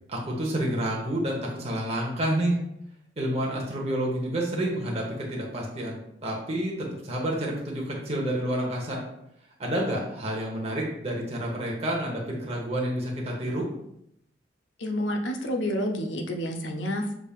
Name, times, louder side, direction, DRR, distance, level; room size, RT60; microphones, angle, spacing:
voice 1, 0.1-2.6 3.2-9.0 9.6-13.7, right 1 dB, 35° right, -2 dB, 1.0 m, -29 dB
voice 2, 14.8-17.1, equal, 85° left, 4 dB, 0.7 m, -29 dB
6.1 x 3.5 x 2.4 m, 0.78 s
head